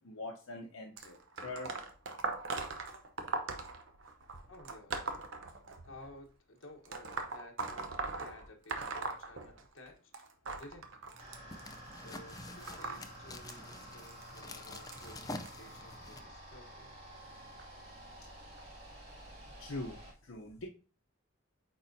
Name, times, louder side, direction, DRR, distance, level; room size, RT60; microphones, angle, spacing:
voice 1, 0.0-1.7 19.6-20.7, left 2 dB, 85° left, 0 dB, 0.8 m, -43 dB
sound 1, 1.0-6.1 6.9-9.9 10.1-15.5 16.3-16.5 17.6-17.7 18.6-18.7 19.4-19.5, right 3 dB, 65° right, 0.8 m, -40 dB
voice 2, 4.5-4.9 5.8-10.0 10.6-10.9 11.9-16.9, left 1 dB, 70° left, 2 dB, 1.2 m, -55 dB
sound 2, 11.1-16.2, left 2 dB, 20° left, 0.5 m, -48 dB
sound 3, 11.2-20.1, right 1 dB, 30° right, 2.3 m, -51 dB
8.5 x 4.3 x 2.7 m, 0.36 s
head